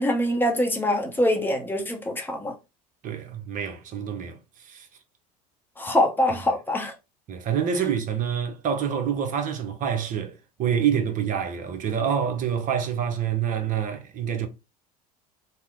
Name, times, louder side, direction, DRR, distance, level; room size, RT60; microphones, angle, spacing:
voice 1, 0.0-2.5 5.8-6.9, left 1 dB, 10° left, 0.8 m, -24 dB
voice 2, 3.0-4.9 7.3-10.3 10.6-14.5, right 8 dB, 40° right, 0.8 m, -27 dB
2.8 x 2.1 x 3.5 m
hypercardioid pair, 75°, 20 cm